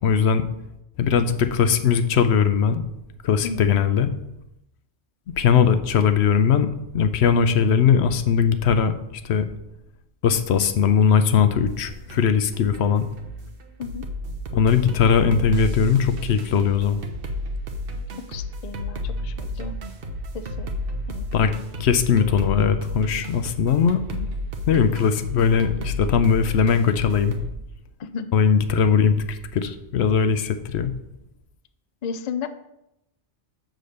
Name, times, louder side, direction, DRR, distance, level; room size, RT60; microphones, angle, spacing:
voice 1, 0.0-0.4 1.0-2.8 3.2-4.1 5.4-9.5 10.2-13.1 14.5-17.0 21.3-21.5 21.8-24.0 24.7-27.4 28.3-30.9, left 7 dB, 75° left, 10 dB, 0.9 m, -20 dB
voice 2, 3.4-3.8 13.8-14.1 18.3-19.7 20.3-20.7 21.1-21.3 24.1-24.3 28.0-28.3 32.0-32.5, left 6 dB, 55° left, 10 dB, 0.5 m, -33 dB
sound 1, 11.5-27.5, equal, 60° right, 1.0 m, -32 dB
6.8 x 3.9 x 6.4 m, 0.86 s
omnidirectional pair, 1.2 m